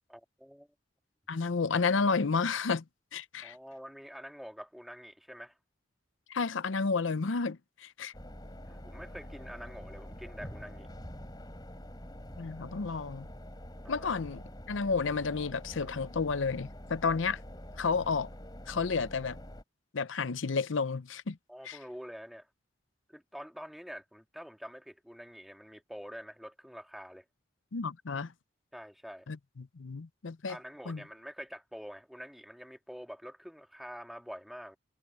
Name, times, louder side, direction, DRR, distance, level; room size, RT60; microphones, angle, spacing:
voice 1, 0.1-0.7 3.4-5.5 8.7-10.9 13.8-14.1 21.5-22.5 23.1-27.2 28.7-29.3 30.5-34.8, equal, ahead, 2.0 m, -46 dB
voice 2, 1.3-2.8 3.1-3.5 6.3-8.1 12.4-13.3 13.9-14.4 14.7-17.4 17.8-18.3 18.7-19.4 19.9-21.4 21.6-21.8 27.7-28.3 29.3-30.6 30.9-31.0, left 4 dB, 75° left, 0.7 m, -31 dB
sound 1, 8.1-19.6, equal, 20° left, 5.8 m, -46 dB
head